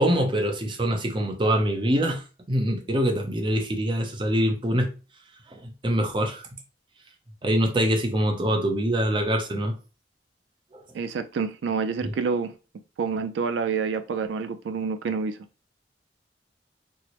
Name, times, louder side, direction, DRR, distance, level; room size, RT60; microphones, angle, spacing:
voice 1, 0.0-4.9 5.5-6.5 7.4-9.7 10.7-10.8 12.0-12.1, equal, 30° right, 0.6 m, -24 dB
voice 2, 10.9-12.5 13.0-15.4, right 5 dB, 90° right, 0.3 m, -28 dB
4.3 x 2.0 x 2.9 m
head